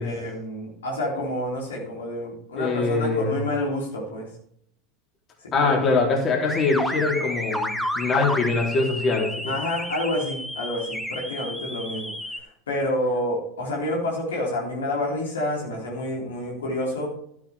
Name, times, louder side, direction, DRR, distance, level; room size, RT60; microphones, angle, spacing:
voice 1, 0.0-4.3 5.4-5.7 9.4-12.1 12.7-17.1, left 1 dB, 80° left, -2 dB, 3.5 m, -28 dB
voice 2, 2.6-3.5 5.5-9.5, left 3 dB, 35° left, 0 dB, 3.6 m, -23 dB
sound 1, 6.5-12.4, equal, 5° left, 1.4 m, -31 dB
12.5 x 9.4 x 3.5 m, 0.69 s
hypercardioid pair, 85°, 0 cm